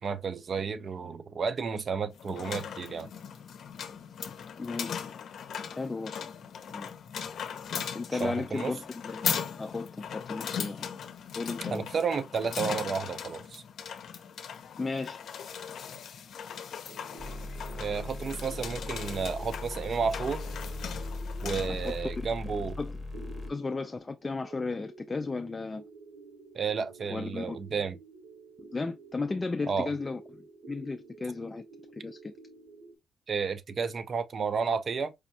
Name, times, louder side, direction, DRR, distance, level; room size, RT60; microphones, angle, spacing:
voice 1, 0.0-3.1 8.1-8.7 11.7-13.6 17.8-20.5 21.4-22.8 26.5-28.0 29.7-29.9 33.3-35.1, right 5 dB, 45° right, 0.5 m, -32 dB
sound 1, 2.1-22.0, left 7 dB, 70° left, 0.6 m, -39 dB
voice 2, 4.3-5.2 5.7-6.1 6.7-6.9 7.9-10.9 11.4-11.8 14.8-15.2 21.8-22.1 22.5-23.0 23.5-25.8 27.1-27.6 28.7-30.2 30.7-31.6 31.9-32.3, left 3 dB, 25° left, 0.4 m, -35 dB
sound 2, 16.9-33.0, right 3 dB, 80° right, 1.2 m, -51 dB
sound 3, 17.2-23.5, left 2 dB, 10° right, 1.2 m, -39 dB
4.9 x 2.2 x 2.7 m
cardioid pair, 120°, 0 cm